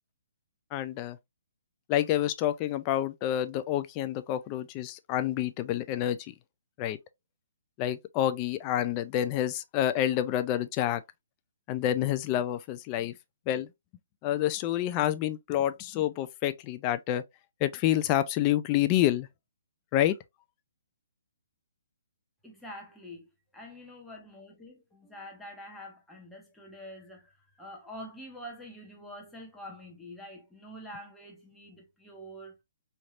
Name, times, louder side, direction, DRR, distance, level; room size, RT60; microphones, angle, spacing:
voice 1, 0.7-1.2 1.9-6.3 6.8-7.0 7.8-11.0 11.7-13.1 13.5-13.7 14.2-17.2 17.6-19.3 19.9-20.2, left 12 dB, 25° left, 0.3 m, -28 dB
voice 2, 22.4-32.6, equal, 5° left, 1.0 m, -46 dB
3.2 x 2.7 x 2.4 m
hypercardioid pair, 155°, 0 cm